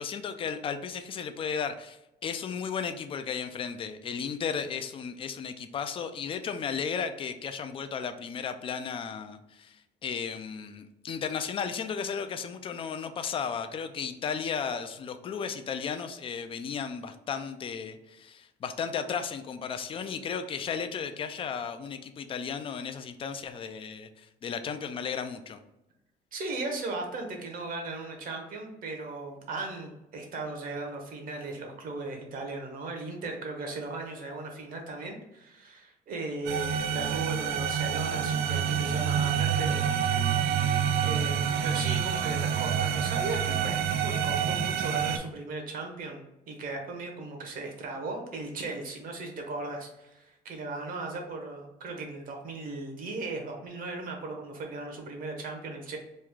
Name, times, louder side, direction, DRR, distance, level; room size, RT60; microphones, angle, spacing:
voice 1, 0.0-25.6, left 6 dB, 35° left, 9 dB, 0.3 m, -34 dB
voice 2, 26.3-40.0 41.0-56.0, right 3 dB, 55° right, 2 dB, 0.9 m, -37 dB
sound 1, 36.5-45.2, right 8 dB, 80° right, 0.4 m, -27 dB
3.1 x 2.3 x 3.5 m, 0.91 s
cardioid pair, 110°, 17 cm